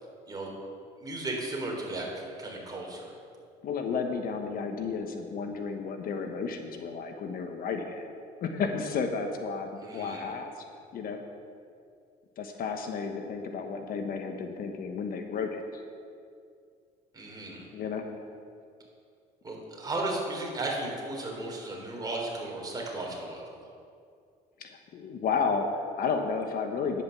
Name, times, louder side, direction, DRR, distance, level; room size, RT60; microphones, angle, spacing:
voice 1, 1.0-3.1 9.8-10.2 17.1-17.7 19.4-23.5, right 2 dB, 25° right, -1 dB, 3.6 m, -35 dB
voice 2, 3.6-8.1 8.4-10.5 10.9-11.2 12.4-15.8 17.7-18.1 24.6-27.0, left 5 dB, 60° left, 5 dB, 1.2 m, -32 dB
10.5 x 8.9 x 7.0 m, 2.3 s
cardioid pair, 110°, 17 cm